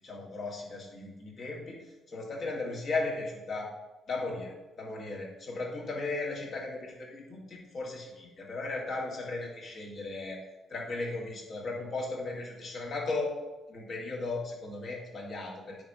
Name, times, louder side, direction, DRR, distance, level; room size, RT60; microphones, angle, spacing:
voice 1, 0.0-1.8 2.1-3.7 4.1-10.4 10.7-13.3 13.7-15.8, left 3 dB, 55° left, -3 dB, 2.5 m, -36 dB
9.2 x 3.5 x 5.7 m, 1.1 s
cardioid pair, 90°, 0 cm